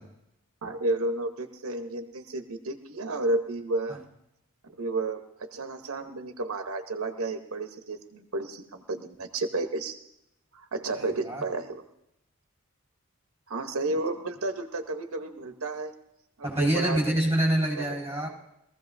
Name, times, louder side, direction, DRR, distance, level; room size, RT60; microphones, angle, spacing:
voice 1, 0.6-4.0 4.7-9.9 10.5-11.8 13.5-15.9 16.4-17.0 17.8-18.0, right 2 dB, 90° right, 6 dB, 1.0 m, -32 dB
voice 2, 10.9-11.4 16.4-18.3, right 1 dB, 15° right, -3 dB, 4.8 m, -26 dB
22.0 x 15.0 x 2.7 m, 0.83 s
head